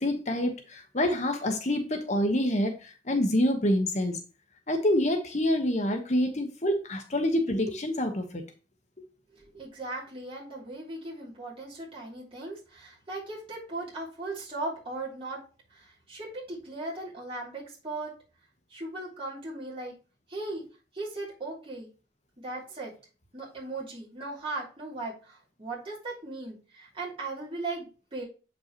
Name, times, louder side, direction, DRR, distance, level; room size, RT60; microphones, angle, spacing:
voice 1, 0.0-4.2 4.7-8.4, left 1 dB, 35° left, 1.1 m, -27 dB
voice 2, 9.3-15.4 15.7-18.1 18.7-19.9 20.3-20.6 20.9-21.9 22.4-22.9 23.3-28.2, right 2 dB, 30° right, 3.0 m, -38 dB
8.1 x 5.4 x 3.0 m
head